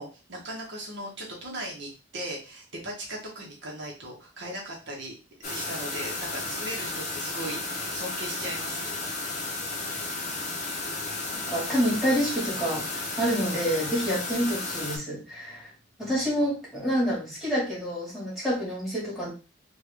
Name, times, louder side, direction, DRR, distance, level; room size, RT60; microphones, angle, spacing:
voice 1, 0.0-5.1 5.5-8.9, right 1 dB, 60° right, -1 dB, 0.9 m, -38 dB
sound 1, 5.4-15.0, left 2 dB, 35° left, 0.6 m, -33 dB
voice 2, 11.4-15.7 16.0-19.3, equal, ahead, -7 dB, 1.6 m, -28 dB
3.4 x 2.3 x 3.3 m, 0.33 s
head